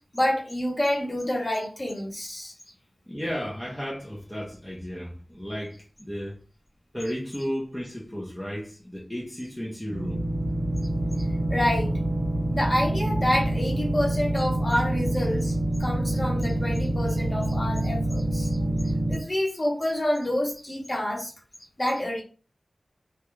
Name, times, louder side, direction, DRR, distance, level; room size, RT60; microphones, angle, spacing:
voice 1, 0.1-2.5 11.2-12.0 12.5-18.6 18.8-21.3 21.8-22.2, left 1 dB, 30° left, 0.9 m, -28 dB
voice 2, 3.1-6.4 6.9-10.2, equal, 10° left, 0.6 m, -34 dB
sound 1, 9.9-19.2, right 1 dB, 15° right, 0.9 m, -26 dB
2.3 x 2.2 x 3.0 m
wide cardioid pair, 70°, 0 cm